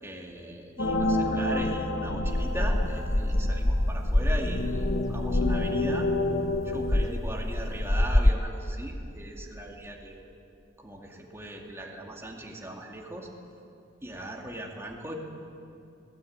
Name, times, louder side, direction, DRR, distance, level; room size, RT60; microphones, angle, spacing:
voice 1, 0.0-6.1 6.6-10.2 10.8-13.3 14.0-15.1, right 1 dB, 15° right, -1 dB, 2.3 m, -39 dB
sound 1, 0.8-7.1, left 2 dB, 60° left, 1.1 m, -29 dB
sound 2, 2.2-8.3, left 1 dB, 15° left, 0.6 m, -27 dB
21.0 x 18.0 x 8.8 m, 2.6 s
head